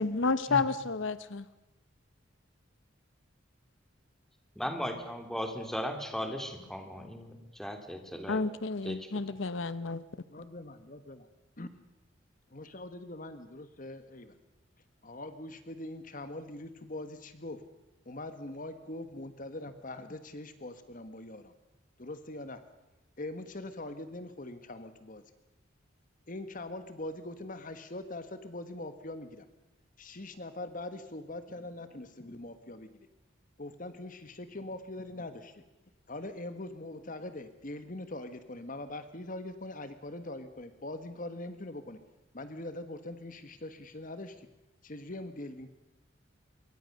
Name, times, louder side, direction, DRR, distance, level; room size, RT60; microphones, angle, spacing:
voice 1, 0.0-1.4 8.3-10.0, left 4 dB, 70° left, 14 dB, 0.9 m, -31 dB
voice 2, 4.6-8.4 8.8-9.0, equal, ahead, 5 dB, 3.1 m, -37 dB
voice 3, 10.3-11.3 11.6-11.7 12.5-14.4 15.0-17.6 18.0-21.5 22.0-22.6 23.2-25.2 26.3-29.4 30.0-32.9 33.6-35.6 36.1-42.0 42.3-44.5 44.8-45.7, left 2 dB, 40° left, 10 dB, 1.5 m, -42 dB
26.0 x 23.5 x 6.7 m, 1.0 s
head